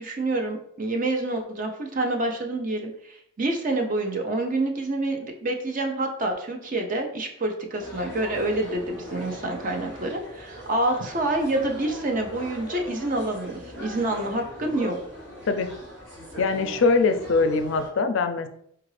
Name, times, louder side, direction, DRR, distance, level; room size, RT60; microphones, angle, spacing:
voice 1, 0.0-15.0, right 2 dB, 40° right, 3 dB, 0.5 m, -27 dB
sound 1, 7.8-17.9, equal, 60° right, 1.3 m, -40 dB
voice 2, 16.4-18.5, left 4 dB, 65° left, 8 dB, 0.4 m, -22 dB
4.6 x 2.4 x 3.2 m, 0.70 s
head